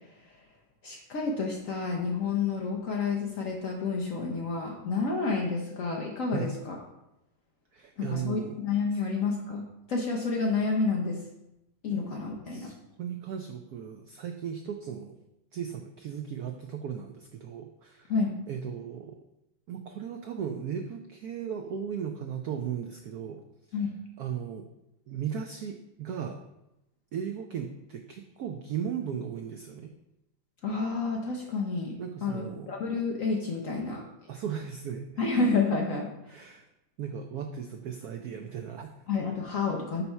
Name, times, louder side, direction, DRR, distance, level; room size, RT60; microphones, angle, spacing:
voice 1, 0.8-6.8 8.0-11.2 11.8-12.7 18.1-18.4 23.7-23.9 30.6-34.0 35.2-36.1 39.1-40.0, left 4 dB, 65° left, 0 dB, 0.8 m, -29 dB
voice 2, 7.7-8.6 11.9-12.0 12.5-15.2 15.5-18.1 18.5-19.2 19.7-23.4 23.7-23.8 24.2-24.7 25.1-26.4 27.1-29.9 32.0-32.7 34.3-35.1 36.3-36.6 37.0-38.9, right 8 dB, 90° right, 4 dB, 0.8 m, -36 dB
5.6 x 4.2 x 5.5 m, 0.89 s
omnidirectional pair, 2.2 m